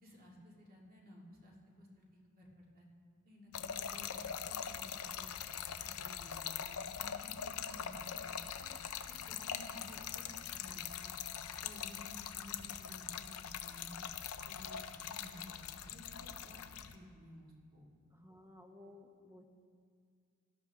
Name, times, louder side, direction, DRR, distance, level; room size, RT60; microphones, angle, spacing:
voice 1, 0.0-2.9 3.2-5.3 5.8-8.7 9.1-11.1 11.6-14.0 14.4-17.9, left 1 dB, 40° right, -2 dB, 2.2 m, -56 dB
Trickle dribble / Fill (with liquid), 3.5-17.0, left 8 dB, 75° left, 0.6 m, -43 dB
voice 2, 18.1-19.4, left 2 dB, 15° right, 3 dB, 1.1 m, -57 dB
17.5 x 12.5 x 3.6 m, 2.1 s
head